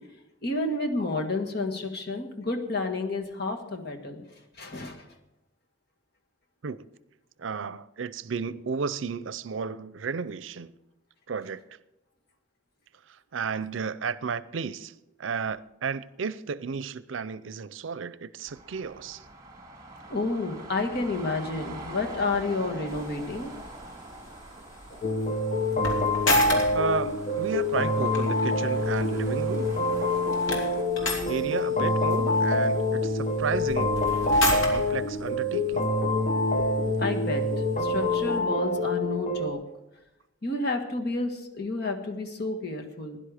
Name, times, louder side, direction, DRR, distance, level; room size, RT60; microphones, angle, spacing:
voice 1, 0.4-4.2 4.6-5.1 20.1-23.5 37.0-37.4 37.8-39.6 40.4-43.2, left 2 dB, 55° left, 1.7 m, -30 dB
voice 2, 7.4-10.8 11.3-11.6 13.1-14.9 15.2-19.2 26.7-29.7 31.3-34.0 34.4-35.9, right 5 dB, 75° right, 0.5 m, -33 dB
sound 1, 18.5-30.8, right 2 dB, 20° right, 2.1 m, -44 dB
sound 2, 22.9-38.4, left 2 dB, 90° left, 2.9 m, -36 dB
sound 3, 25.0-39.5, left 1 dB, 40° left, 1.1 m, -26 dB
16.5 x 11.0 x 5.0 m
head